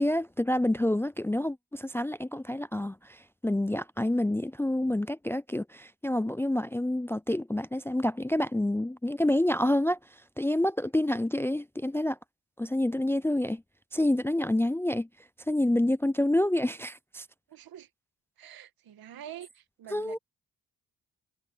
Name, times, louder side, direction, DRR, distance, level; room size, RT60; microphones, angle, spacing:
voice 1, 0.0-10.0 10.4-12.2 12.6-13.6 13.9-15.1 15.5-17.3 19.9-20.2, left 1 dB, 5° left, 0.4 m, -28 dB
voice 2, 17.5-17.9 18.4-19.5 19.8-20.2, right 10 dB, 75° right, 2.0 m, -45 dB
cardioid pair, 70°, 36 cm